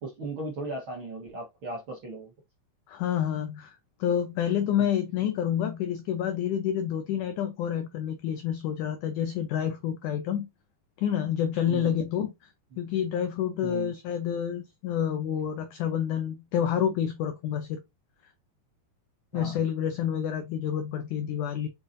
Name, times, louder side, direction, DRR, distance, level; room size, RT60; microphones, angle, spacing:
voice 1, 0.0-2.3 4.8-4.9 11.7-12.0 12.7-12.8 13.6-13.9 19.3-19.5, right 2 dB, 70° right, 1.2 m, -37 dB
voice 2, 2.9-10.5 11.0-12.3 12.8-17.8 19.3-21.7, left 9 dB, 75° left, 1.9 m, -28 dB
7.0 x 5.4 x 2.6 m
omnidirectional pair, 4.4 m